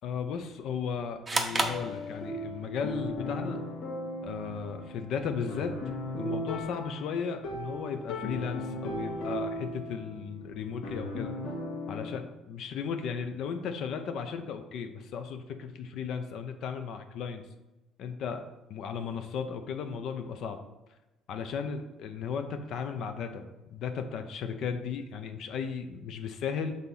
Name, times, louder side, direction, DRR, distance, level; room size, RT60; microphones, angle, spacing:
voice 1, 0.0-3.6 4.2-5.7 6.2-11.3 11.9-17.4 18.0-18.4 18.7-20.6 21.3-23.4 23.7-26.8, left 6 dB, 55° left, 7 dB, 0.6 m, -35 dB
sound 1, 1.3-2.7, right 3 dB, 15° right, 0.6 m, -31 dB
sound 2, 1.5-12.2, left 1 dB, 70° left, 1.8 m, -37 dB
6.5 x 4.0 x 5.5 m, 1.0 s
cardioid pair, 165°, 0 cm